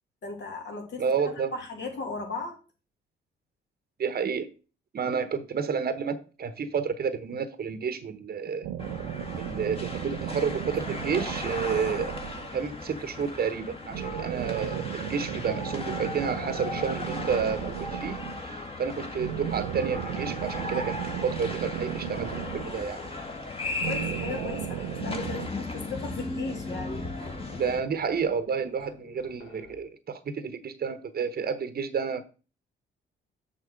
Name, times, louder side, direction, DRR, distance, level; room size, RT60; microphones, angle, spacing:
voice 1, 0.2-2.6 23.7-27.4, left 3 dB, 55° left, 2.7 m, -37 dB
voice 2, 1.0-1.5 4.0-4.5 4.9-8.7 9.4-12.1 12.5-23.0 27.5-32.2, right 6 dB, 45° right, 1.1 m, -30 dB
sound 1, 8.6-12.8 13.9-18.6 19.2-23.2 23.8-25.5, right 11 dB, 80° right, 0.6 m, -35 dB
sound 2, 8.8-27.8, left 2 dB, 25° left, 1.8 m, -37 dB
sound 3, 22.1-29.8, left 5 dB, 80° left, 1.3 m, -49 dB
6.8 x 4.1 x 6.5 m
supercardioid pair, 55°, 21 cm